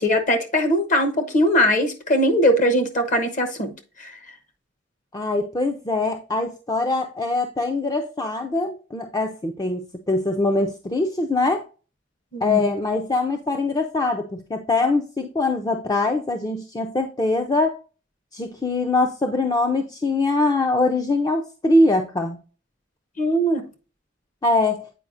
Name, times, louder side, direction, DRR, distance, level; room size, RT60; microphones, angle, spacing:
voice 1, 0.0-3.7 4.0-4.2 12.3-12.7 23.2-23.6, equal, 40° left, 1.0 m, -20 dB
voice 2, 5.1-11.6 12.4-17.8 18.3-22.4 24.4-24.9, left 2 dB, 20° left, 0.5 m, -23 dB
8.3 x 4.8 x 2.5 m
head